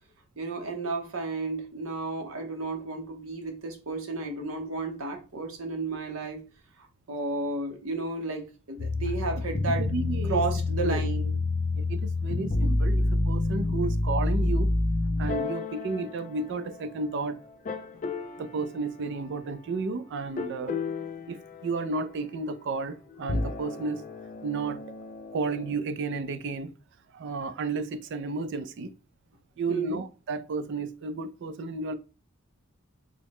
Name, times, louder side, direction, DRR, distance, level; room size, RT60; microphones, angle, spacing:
voice 1, 0.4-6.4 7.1-9.8 10.3-11.4 29.7-30.0, right 3 dB, 70° right, 0.8 m, -32 dB
sound 1, 8.8-17.1 17.7-18.5 20.4-22.1 23.2-25.8, left 2 dB, 35° left, 0.3 m, -29 dB
voice 2, 9.8-10.4 10.8-11.0 11.7-14.7 15.2-17.4 18.4-20.7 21.3-21.4 21.6-24.0 24.4-24.8 25.3-26.7 27.1-28.9 29.6-31.9, right 3 dB, 55° right, 0.4 m, -32 dB
3.5 x 2.1 x 3.5 m
head